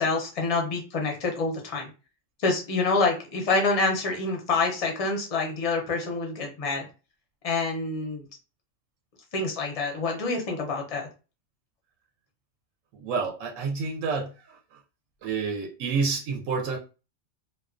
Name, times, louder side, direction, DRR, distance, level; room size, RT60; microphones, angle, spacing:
voice 1, 0.0-1.9 2.4-6.9 7.4-8.2 9.3-11.1, left 3 dB, 45° left, 1 dB, 0.5 m, -27 dB
voice 2, 12.9-14.8 15.2-16.8, right 4 dB, 80° right, 2 dB, 0.9 m, -29 dB
2.3 x 2.3 x 2.4 m, 0.32 s
omnidirectional pair, 1.3 m